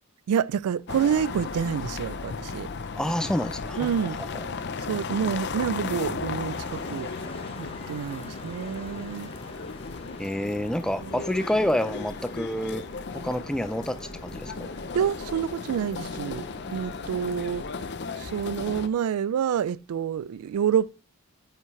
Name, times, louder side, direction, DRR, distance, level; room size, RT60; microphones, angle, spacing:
voice 1, 0.3-2.7 3.8-4.2 4.8-7.1 7.6-9.3 11.0-11.1 14.9-16.4 16.7-17.9 18.2-20.9, right 8 dB, 75° right, 0.3 m, -28 dB
sound 1, 0.9-18.9, left 4 dB, 50° left, 0.6 m, -36 dB
voice 2, 3.0-4.1 10.2-12.8 13.1-14.7, left 1 dB, 5° left, 0.4 m, -28 dB
sound 2, 6.5-17.9, left 1 dB, 25° left, 1.2 m, -44 dB
9.2 x 5.7 x 3.1 m
head